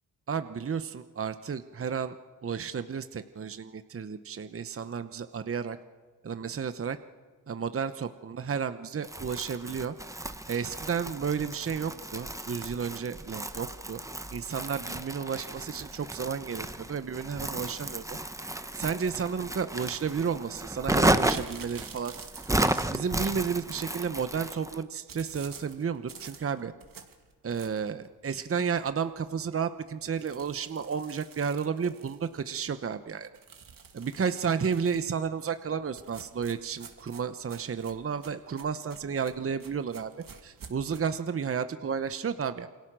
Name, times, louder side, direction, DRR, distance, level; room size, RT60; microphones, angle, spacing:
voice 1, 0.3-2.2 2.4-5.8 6.2-7.0 7.5-9.9 10.5-14.0 14.3-18.0 18.7-22.1 22.9-26.7 27.4-33.3 33.9-40.1 40.4-42.7, right 6 dB, 35° right, 11 dB, 1.0 m, -32 dB
Crumpling crinkling, 9.0-24.8, right 1 dB, 10° right, 1.1 m, -33 dB
sound 1, 21.1-23.2 25.1-28.0 28.5-28.6 28.9-29.0 29.3-29.4 30.0-32.6 33.4-35.1 36.0-41.0, right 6 dB, 60° right, 2.7 m, -49 dB
28.0 x 22.5 x 6.2 m, 1.5 s
cardioid pair, 80°, 39 cm